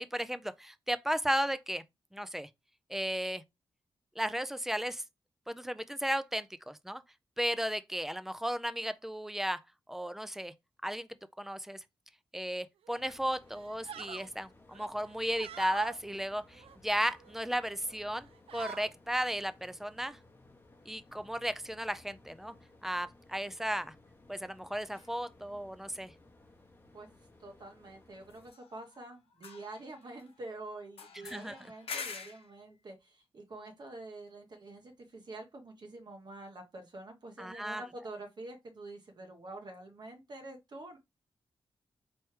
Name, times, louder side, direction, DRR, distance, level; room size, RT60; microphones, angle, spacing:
voice 1, 0.0-1.8 2.1-2.5 2.9-3.4 4.2-5.0 5.5-7.0 7.4-9.6 9.9-10.5 10.8-11.1 11.4-11.8 12.3-20.2 20.9-22.5 22.8-23.9 24.3-26.1 31.2-31.6 37.4-37.8, equal, 5° right, 0.3 m, -35 dB
sound 1, 12.8-13.1 13.5-14.3 14.7-16.0 16.5-17.4 17.8-18.0 18.3-18.9, right 8 dB, 90° right, 0.4 m, -46 dB
sound 2, 13.0-28.5, left 2 dB, 25° left, 0.8 m, -60 dB
sound 3, 24.9-25.1 28.3-29.1 29.3-30.4 31.0-32.5, left 5 dB, 80° left, 0.8 m, -45 dB
voice 2, 27.4-41.0, right 2 dB, 45° right, 0.8 m, -47 dB
4.6 x 3.1 x 3.1 m
wide cardioid pair, 140°, 10 cm